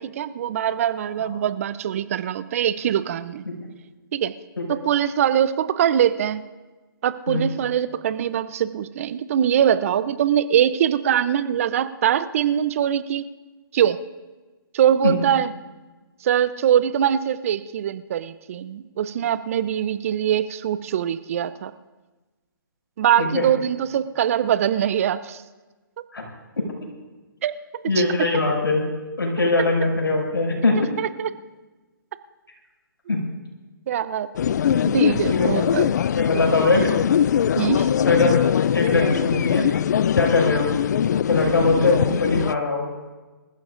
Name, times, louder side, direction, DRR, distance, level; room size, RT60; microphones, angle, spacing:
voice 1, 0.0-3.4 4.1-4.3 4.7-6.4 7.0-13.3 13.7-14.0 14.7-15.5 16.2-21.7 23.0-25.4 27.4-28.0 29.4-29.5 30.8-31.3 33.1-33.2 33.9-34.3 34.9-35.9 37.6-37.9, right 10 dB, 40° right, 14 dB, 0.6 m, -22 dB
voice 2, 27.8-28.9 29.2-30.8 33.1-33.3 35.3-35.6 36.1-36.9 38.0-38.4 38.7-39.7 40.1-40.7 41.3-42.9, left 3 dB, 85° left, 0 dB, 6.2 m, -21 dB
sound 1, 34.4-42.5, left 9 dB, 50° left, 0.4 m, -21 dB
27.0 x 14.5 x 2.6 m, 1.2 s
hypercardioid pair, 150°, 12 cm